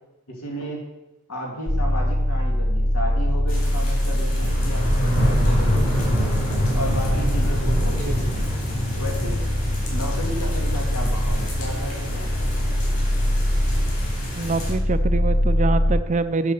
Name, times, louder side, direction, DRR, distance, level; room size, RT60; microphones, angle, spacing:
voice 1, 0.3-0.9 1.3-5.9 6.7-8.3 8.9-9.5 9.9-12.5, equal, 80° left, -1 dB, 2.6 m, -33 dB
sound 1, 1.7-16.0, equal, 20° left, 0.7 m, -23 dB
sound 2, 3.5-14.7, equal, 40° left, 4.0 m, -26 dB
voice 2, 8.0-8.5 14.4-16.5, right 3 dB, 30° right, 11 dB, 0.4 m, -25 dB
8.5 x 6.0 x 7.4 m, 0.99 s
head